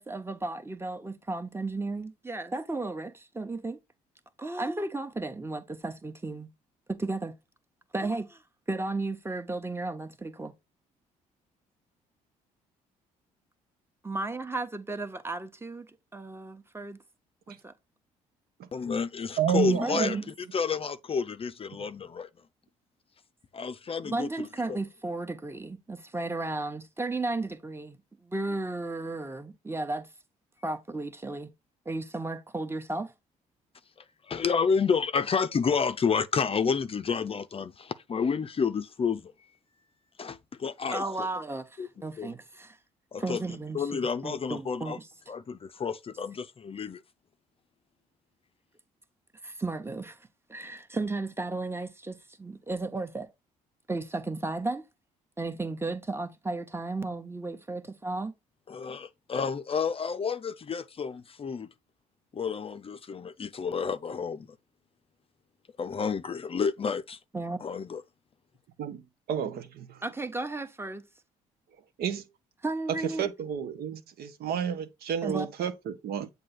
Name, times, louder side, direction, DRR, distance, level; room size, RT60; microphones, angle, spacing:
voice 1, 0.0-3.8 4.4-6.5 6.9-7.4 7.9-8.4 8.7-10.5 14.0-15.9 16.1-17.0 17.5-17.7 19.8-20.3 24.0-28.0 28.2-30.1 30.6-31.5 31.8-33.1 40.9-42.8 43.2-45.1 49.4-50.2 50.5-53.3 53.9-54.9 55.4-58.3 67.3-67.6 70.0-71.0 72.6-73.3 75.2-75.5, right 2 dB, 15° right, 1.1 m, -34 dB
voice 2, 18.7-20.2 20.5-22.3 23.5-24.8 34.3-39.3 40.2-41.3 41.8-41.9 42.2-42.3 43.1-43.4 43.7-45.0 45.3-47.0 58.7-61.7 62.3-64.5 65.8-67.2 67.6-68.0, left 6 dB, 35° left, 0.5 m, -30 dB
voice 3, 19.4-20.2 68.8-70.0 72.0-72.2 72.9-76.3, right 8 dB, 70° right, 0.9 m, -31 dB
7.5 x 2.7 x 5.8 m
supercardioid pair, 60°, 17 cm